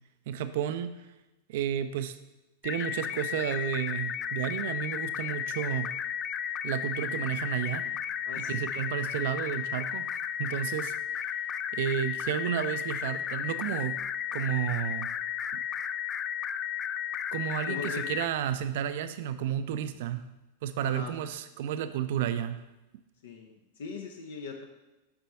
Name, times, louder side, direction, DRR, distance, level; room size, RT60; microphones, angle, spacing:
voice 1, 0.3-1.1 1.5-2.2 2.6-5.9 6.6-7.9 8.4-10.1 10.4-11.5 11.7-14.0 14.3-15.1 15.5-15.6 17.3-20.2 20.6-22.6, right 10 dB, 55° right, 11 dB, 0.5 m, -32 dB
sound 1, 2.6-18.3, left 9 dB, 25° left, 0.4 m, -34 dB
voice 2, 8.3-8.6 17.7-18.1 20.8-21.1 23.2-24.7, left 4 dB, 60° left, 2 dB, 0.8 m, -40 dB
7.0 x 5.4 x 4.2 m, 1.0 s
figure-of-eight pair, 90°, 0 cm